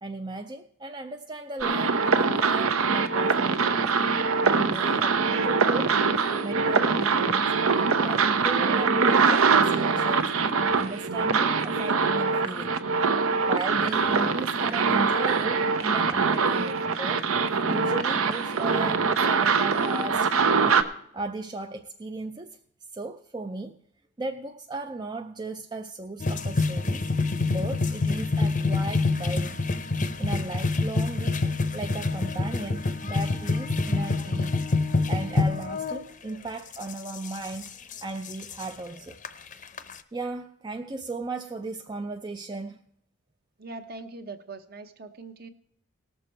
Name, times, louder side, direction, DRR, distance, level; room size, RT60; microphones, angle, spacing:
voice 1, 0.0-3.8 4.4-6.0 6.4-12.7 13.4-17.3 17.7-20.3 21.1-22.6 22.9-23.8 24.2-29.6 30.2-31.4 31.7-34.6 35.1-39.2 40.1-42.8, right 3 dB, 20° right, 0.4 m, -36 dB
sound 1, 1.6-20.8, right 5 dB, 75° right, 0.8 m, -23 dB
sound 2, 26.2-36.0 36.7-38.6 39.2-39.3 39.5-39.9, left 3 dB, 35° left, 0.7 m, -26 dB
voice 2, 43.6-45.5, right 3 dB, 45° right, 0.9 m, -41 dB
19.0 x 6.8 x 4.4 m
head